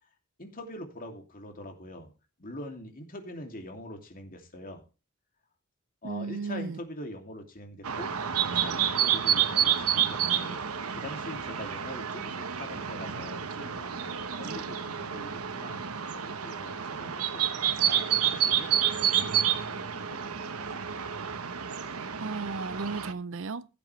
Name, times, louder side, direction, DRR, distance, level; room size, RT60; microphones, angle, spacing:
voice 1, 0.4-2.1 2.4-4.8 6.0-8.2 8.5-10.6 10.9-15.8 16.3-17.4 17.8-18.7 19.1-19.3 19.7-21.1, left 1 dB, 40° left, 2.7 m, -43 dB
voice 2, 6.0-6.8 22.2-23.7, right 4 dB, 60° right, 0.6 m, -34 dB
sound 1, 7.8-23.1, right 9 dB, 90° right, 1.1 m, -29 dB
16.5 x 8.3 x 3.2 m
head